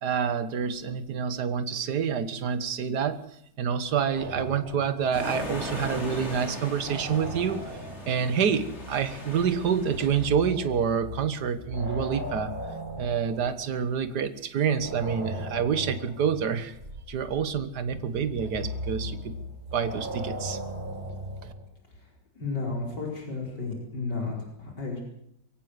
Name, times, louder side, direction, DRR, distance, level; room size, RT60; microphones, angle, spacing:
voice 1, 0.0-3.2 3.6-7.8 8.1-12.5 13.0-16.7 17.1-19.4 19.7-20.6 21.4-21.5, right 7 dB, 65° right, 12 dB, 1.9 m, -27 dB
sound 1, 4.2-6.0 6.3-14.2 14.8-21.6, equal, 25° right, 5.3 m, -38 dB
sound 2, 5.1-10.3, left 2 dB, 35° left, 4.1 m, -38 dB
voice 2, 22.4-25.0, left 3 dB, 70° left, -1 dB, 5.4 m, -33 dB
23.0 x 16.5 x 8.0 m, 0.74 s
omnidirectional pair, 1.9 m